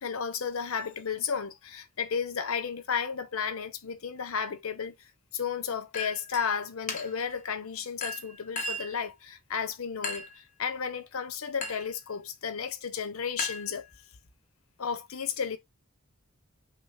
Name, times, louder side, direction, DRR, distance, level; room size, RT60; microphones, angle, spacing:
voice 1, 0.0-13.9 14.8-15.6, left 6 dB, 80° left, 0.7 m, -33 dB
Chink clink, 5.9-6.5 6.9-7.3 8.0-9.0 10.0-10.4 11.6-11.9 13.4-14.2, left 2 dB, 35° left, 0.9 m, -36 dB
6.0 x 2.0 x 4.0 m
head